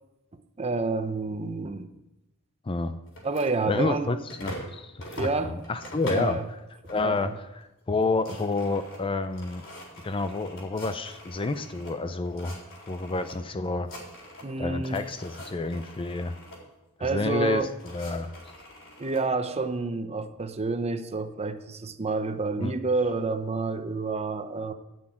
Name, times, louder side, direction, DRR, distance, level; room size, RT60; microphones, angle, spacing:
voice 1, 0.6-1.9 3.2-4.1 5.2-5.6 6.1-6.4 7.0-7.3 14.4-15.0 17.0-17.7 19.0-24.7, right 3 dB, 30° right, 9 dB, 0.7 m, -29 dB
voice 2, 2.6-3.0 3.7-6.4 6.9-7.3 7.5-9.6 10.0-12.6 12.9-13.9 14.6-16.4 17.0-17.6 17.9-18.3 22.6-22.7, left 3 dB, 25° left, 10 dB, 0.5 m, -29 dB
sound 1, 3.1-4.7 5.0-6.4 6.9-7.3 7.6-7.7 8.0-11.9 12.3-13.3 13.6-14.6 14.8-16.6 17.4-19.2, equal, 60° left, 4.0 m, -43 dB
9.6 x 6.3 x 8.8 m, 0.97 s
head